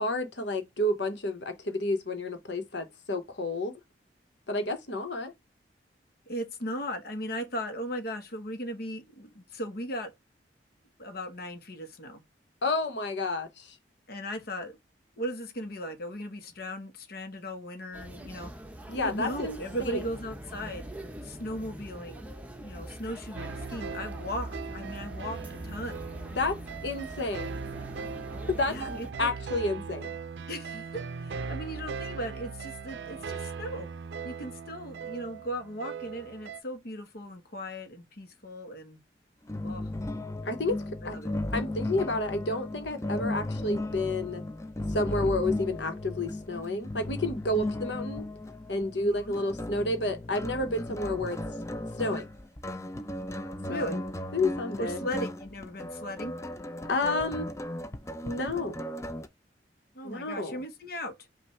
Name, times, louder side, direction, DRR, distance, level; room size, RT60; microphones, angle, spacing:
voice 1, 0.0-3.7 4.5-5.3 12.6-13.7 18.9-19.6 19.8-20.0 26.4-26.6 26.8-27.6 28.6-30.1 40.4-41.2 41.5-44.4 44.9-48.3 48.7-51.4 52.0-52.3 53.7-54.0 54.3-55.0 56.9-57.4 58.2-58.8 60.0-60.5, left 2 dB, 90° left, 1.2 m, -30 dB
voice 2, 6.3-10.1 11.0-12.2 14.1-14.8 15.2-18.5 19.0-20.9 21.2-22.3 22.6-26.0 28.7-29.3 30.5-33.9 34.2-39.0 39.6-39.9 41.0-41.3 49.0-49.3 53.7-54.0 54.8-56.3 59.9-61.1, equal, 60° left, 1.1 m, -37 dB
sound 1, 17.9-29.1, right 1 dB, 10° right, 0.9 m, -43 dB
sound 2, 23.4-36.6, right 5 dB, 80° right, 0.4 m, -39 dB
sound 3, 39.5-59.3, left 1 dB, 15° left, 0.5 m, -36 dB
5.6 x 2.5 x 3.2 m
head